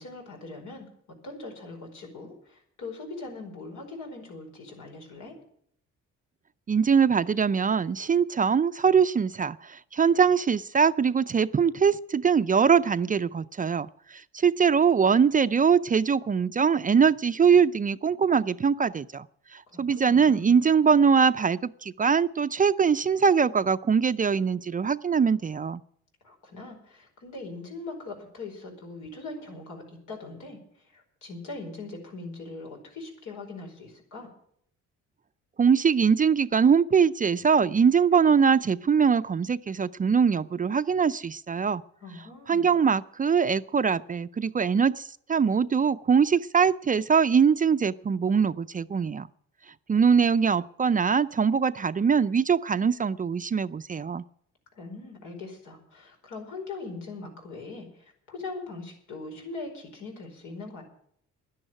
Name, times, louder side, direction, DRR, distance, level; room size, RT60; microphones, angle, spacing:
voice 1, 0.0-5.3 19.7-20.5 26.2-34.3 42.0-42.7 54.7-60.8, left 3 dB, 80° left, 2 dB, 4.9 m, -41 dB
voice 2, 6.7-19.3 19.5-25.8 35.6-41.8 42.5-49.3 49.9-54.2, right 6 dB, 30° right, 13 dB, 0.5 m, -22 dB
11.0 x 10.5 x 8.9 m, 0.66 s
cardioid pair, 90°, 30 cm